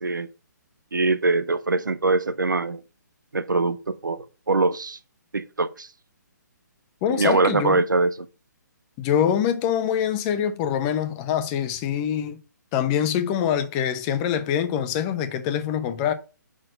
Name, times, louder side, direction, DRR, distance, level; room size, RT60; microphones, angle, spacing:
voice 1, 0.9-2.8 3.3-5.0 5.3-5.9 7.1-8.3, right 3 dB, 85° right, 0.6 m, -23 dB
voice 2, 7.0-7.7 9.0-12.4 12.7-16.1, left 9 dB, 25° left, 0.8 m, -24 dB
6.1 x 4.3 x 6.3 m
figure-of-eight pair, 140°, 10 cm